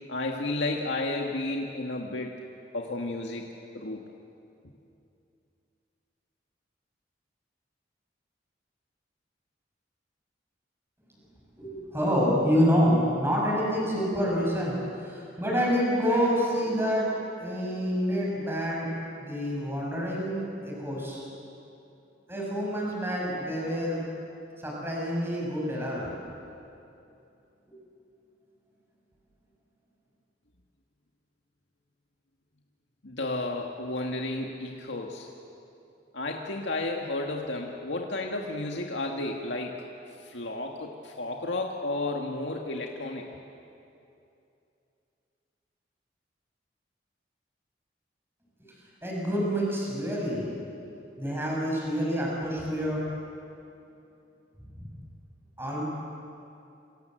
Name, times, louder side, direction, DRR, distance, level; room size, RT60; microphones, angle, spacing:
voice 1, 0.1-2.4 2.7-3.4 3.7-4.0 33.0-35.3 36.1-39.8 40.2-43.3, left 2 dB, 85° left, 1 dB, 1.9 m, -32 dB
voice 2, 11.6-14.8 15.0-17.0 17.4-18.9 19.2-21.2 22.3-24.0 24.6-26.1 27.7-27.8 49.0-50.7 51.2-53.0 54.8-54.9 55.6-55.8, equal, 15° right, -3 dB, 7.3 m, -27 dB
28.0 x 26.5 x 7.9 m, 2.7 s
head